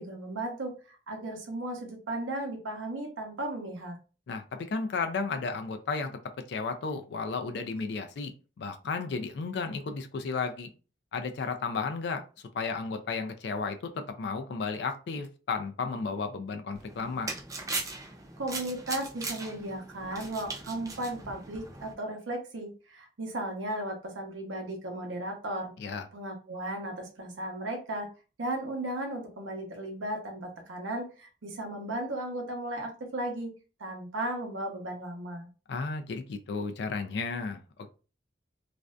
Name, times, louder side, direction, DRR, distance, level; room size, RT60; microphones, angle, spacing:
voice 1, 0.0-4.0 18.4-25.7 26.1-28.1 28.4-33.5 33.8-35.5, right 1 dB, 90° right, 2 dB, 0.7 m, -35 dB
voice 2, 4.3-6.1 6.5-8.3 8.6-10.7 11.1-12.2 12.5-17.3 25.8-26.1 35.7-37.9, left 4 dB, 60° left, 7 dB, 0.3 m, -33 dB
sound 1, 16.8-21.9, right 3 dB, 15° right, 0.4 m, -39 dB
2.5 x 2.2 x 2.3 m, 0.34 s
head